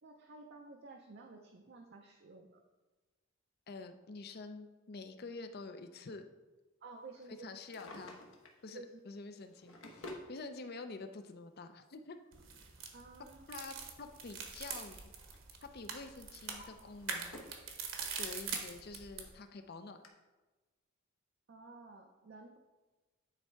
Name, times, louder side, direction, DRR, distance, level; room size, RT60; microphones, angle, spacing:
voice 1, 0.0-2.6 6.8-7.6 8.7-9.0 12.9-13.5 21.5-22.6, right 3 dB, 50° right, 2 dB, 0.5 m, -52 dB
voice 2, 3.7-6.2 7.3-8.2 8.6-12.2 13.5-15.1 15.6-17.3 18.2-20.0, left 3 dB, 45° left, 8 dB, 0.5 m, -48 dB
Drawer open or close, 7.5-8.6 9.4-10.3 11.4-11.5 13.3-14.8 15.1-15.5 16.0-17.7 18.1-18.2 18.9-19.0 19.3-19.4 20.0-20.1, left 1 dB, 65° left, 1.0 m, -52 dB
sound 1, 12.3-19.3, right 5 dB, 65° right, 1.0 m, -44 dB
9.8 x 3.4 x 4.5 m, 1.2 s
head